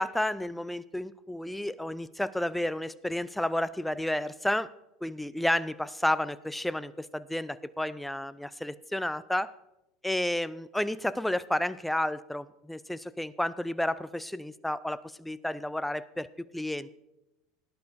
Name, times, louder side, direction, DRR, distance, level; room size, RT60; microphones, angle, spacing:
voice 1, 0.0-4.7 5.0-9.5 10.0-16.9, left 1 dB, 5° left, 17 dB, 0.4 m, -31 dB
18.0 x 10.5 x 2.6 m, 0.93 s
hypercardioid pair, 85°, 3 cm